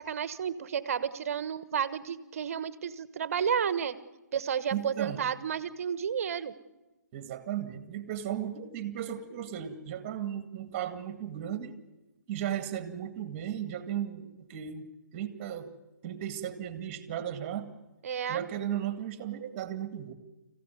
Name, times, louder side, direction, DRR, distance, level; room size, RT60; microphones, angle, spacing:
voice 1, 0.0-4.0 4.3-6.5 18.0-18.4, right 7 dB, 50° right, 14 dB, 1.3 m, -31 dB
voice 2, 4.7-5.2 7.1-11.8 12.3-14.9 15.1-15.7 16.0-17.7 18.3-20.1, right 10 dB, 30° right, 10 dB, 2.1 m, -35 dB
25.5 x 15.5 x 9.5 m, 1.1 s
hypercardioid pair, 145°, 10 cm